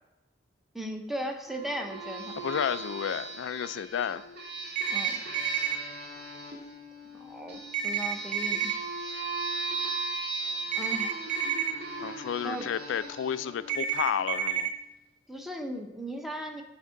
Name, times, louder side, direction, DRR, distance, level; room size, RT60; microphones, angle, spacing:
voice 1, 0.7-2.5 4.9-5.2 7.2-8.7 10.7-11.2 12.4-12.7 15.3-16.6, right 1 dB, ahead, 3 dB, 0.7 m, -37 dB
sound 1, 1.5-14.7, right 3 dB, 60° right, 1.8 m, -38 dB
voice 2, 2.4-4.2 12.0-14.7, left 8 dB, 70° left, 15 dB, 0.3 m, -31 dB
sound 2, 4.8-5.8 7.7-8.7 10.7-11.7 13.7-14.7, right 8 dB, 40° right, 0.6 m, -29 dB
9.0 x 3.5 x 5.7 m, 0.92 s
head